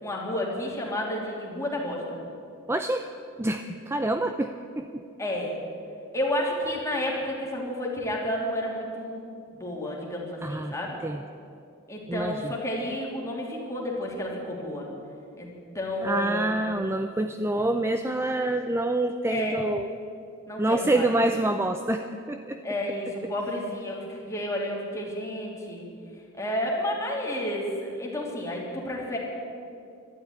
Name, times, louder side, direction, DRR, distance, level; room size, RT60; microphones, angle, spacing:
voice 1, 0.0-2.2 5.2-5.6 6.1-9.3 9.5-11.0 11.9-14.9 15.4-15.5 15.7-16.6 19.3-19.6 20.5-21.1 22.6-25.9 26.3-29.2, left 1 dB, 15° left, -3 dB, 3.0 m, -31 dB
voice 2, 2.7-3.0 3.4-5.0 10.4-10.7 11.0-11.2 12.1-12.5 16.0-19.9 20.6-22.6, right 1 dB, 10° right, 7 dB, 0.4 m, -27 dB
12.5 x 11.5 x 9.4 m, 2.5 s
head